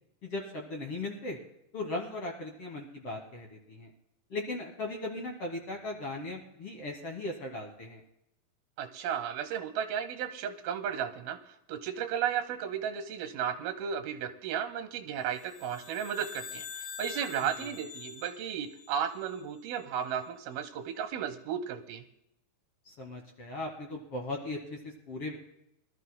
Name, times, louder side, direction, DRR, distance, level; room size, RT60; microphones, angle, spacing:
voice 1, 0.2-1.4 1.7-3.9 4.3-8.0 17.4-17.7 22.9-25.4, left 2 dB, 55° left, 1 dB, 1.7 m, -38 dB
voice 2, 8.8-11.4 11.7-22.0, right 8 dB, 85° right, 9 dB, 2.9 m, -34 dB
sound 1, 15.3-19.8, left 6 dB, 85° left, 3.7 m, -46 dB
24.0 x 12.5 x 2.2 m, 0.79 s
omnidirectional pair, 4.2 m